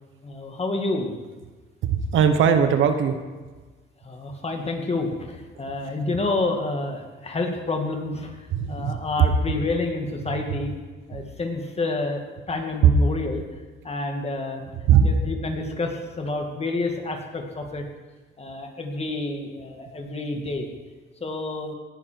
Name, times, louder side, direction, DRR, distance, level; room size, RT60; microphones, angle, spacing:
voice 1, 0.2-1.1 4.0-8.4 8.7-10.7 11.1-13.4 13.8-14.6 15.0-17.9 18.4-20.7 21.2-21.7, left 2 dB, 30° left, 3 dB, 2.3 m, -29 dB
voice 2, 1.8-3.2 8.5-9.6 12.8-12.9 14.9-15.1, right 8 dB, 80° right, 8 dB, 1.3 m, -19 dB
18.5 x 10.0 x 4.7 m, 1.3 s
cardioid pair, 90°, 20 cm